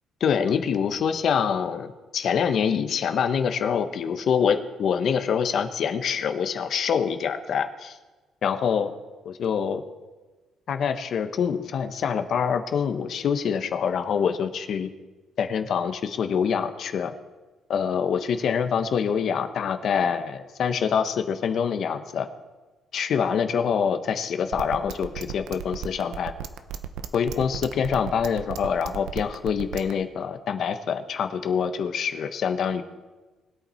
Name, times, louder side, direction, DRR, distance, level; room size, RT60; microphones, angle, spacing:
voice 1, 0.2-8.0 8.4-8.9 9.2-9.8 10.7-14.9 15.4-17.1 17.7-22.3 22.9-26.3 27.1-32.8, left 7 dB, 55° left, 9 dB, 1.0 m, -25 dB
sound 1, 24.5-29.9, right 10 dB, 80° right, 0.7 m, -34 dB
20.5 x 8.2 x 4.4 m, 1.2 s
cardioid pair, 115°, 0 cm